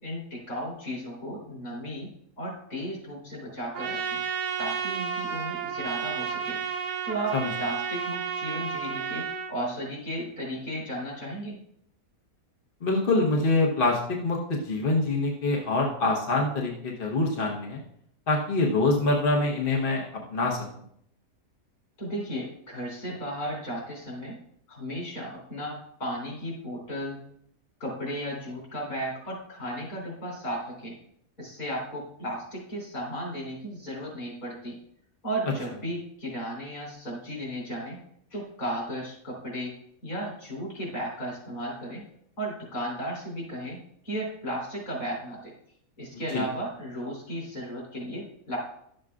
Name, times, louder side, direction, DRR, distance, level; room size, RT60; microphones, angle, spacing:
voice 1, 0.0-2.1 2.4-4.2 4.6-6.6 7.1-11.6 22.0-24.4 24.7-27.2 27.8-30.9 31.4-34.7 35.2-38.0 38.3-39.7 40.0-42.0 42.4-43.8 44.0-45.5 46.0-48.6, equal, 65° left, -4 dB, 4.2 m, -35 dB
Trumpet, 3.7-9.5, right 7 dB, 80° right, 1.3 m, -32 dB
voice 2, 12.8-17.8 18.3-20.0 20.3-20.6 46.1-46.4, left 2 dB, 40° left, -2 dB, 1.1 m, -25 dB
12.0 x 7.6 x 2.4 m, 0.71 s
omnidirectional pair, 1.7 m